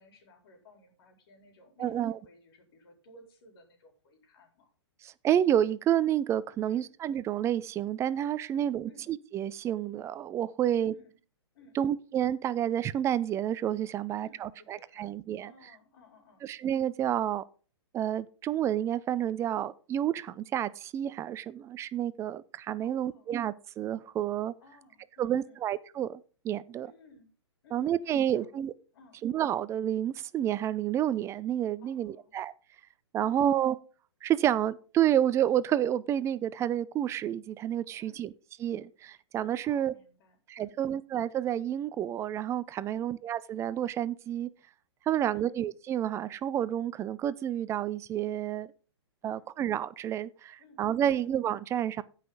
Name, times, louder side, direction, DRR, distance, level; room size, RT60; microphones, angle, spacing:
voice 1, 0.0-4.7 6.6-7.0 8.5-9.1 10.6-11.2 11.5-11.9 14.1-15.1 15.4-16.5 22.8-23.3 24.6-25.6 26.8-27.3 27.6-28.5 28.9-29.2 31.8-32.3 33.2-33.6 38.0-38.3 39.6-41.0 42.9-43.1 45.1-45.5 49.2-49.5 50.6-51.4, left 2 dB, 55° left, 4.0 m, -58 dB
voice 2, 1.8-2.1 5.0-10.9 11.8-15.5 16.4-17.4 17.9-24.5 25.2-26.9 27.7-28.7 29.2-32.5 33.1-33.7 34.2-38.3 38.6-39.9 40.5-44.5 45.1-48.7 49.2-52.0, right 10 dB, 20° right, 0.5 m, -29 dB
16.5 x 5.8 x 3.9 m
figure-of-eight pair, 120°, 15 cm